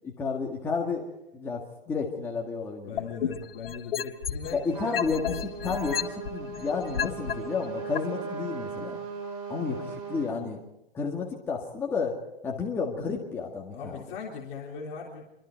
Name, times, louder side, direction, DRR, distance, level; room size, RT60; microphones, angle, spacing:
voice 1, 0.0-1.1 1.3-3.1 4.5-9.0 9.5-10.6 10.9-14.0, left 5 dB, 10° left, -2 dB, 1.9 m, -31 dB
voice 2, 2.9-5.0 9.8-9.9 13.7-15.2, left 5 dB, 30° left, -3 dB, 3.4 m, -39 dB
sound 1, 3.0-4.6 4.9-7.3 8.0-8.1, left 9 dB, 70° left, 2.0 m, -30 dB
Trumpet, 4.7-10.4, right 5 dB, 35° right, 5.9 m, -38 dB
26.5 x 24.0 x 4.6 m, 0.92 s
hypercardioid pair, 165°, 30 cm